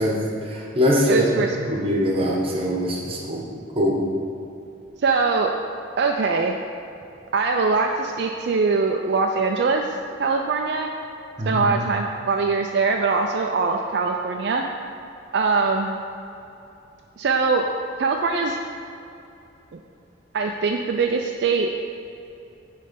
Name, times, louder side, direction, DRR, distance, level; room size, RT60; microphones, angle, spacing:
voice 1, 0.0-1.3 1.7-3.5 3.7-4.0 11.4-11.6, equal, 30° right, -2 dB, 1.0 m, -22 dB
voice 2, 1.1-1.5 5.0-5.5 6.0-6.6 7.3-9.9 10.2-10.9 11.5-14.7 15.3-16.0 17.2-17.7 18.0-18.6 20.3-21.7, right 4 dB, 60° right, 2 dB, 0.4 m, -22 dB
9.5 x 3.2 x 5.1 m, 2.8 s
head